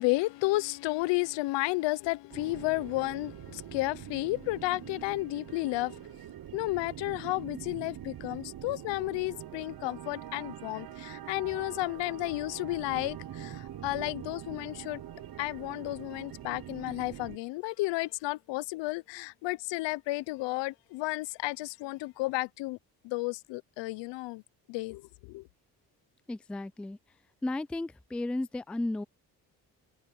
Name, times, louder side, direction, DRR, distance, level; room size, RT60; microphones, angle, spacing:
voice 1, 0.0-6.1 6.5-15.0 15.4-22.8 23.0-24.4 24.7-25.4, left 21 dB, 80° left, 0.9 m, -32 dB
sound 1, 2.3-17.4, right 11 dB, 55° right, 1.3 m, -44 dB
voice 2, 26.3-27.0 27.4-29.0, left 2 dB, 5° left, 0.3 m, -34 dB
supercardioid pair, 60°, 42 cm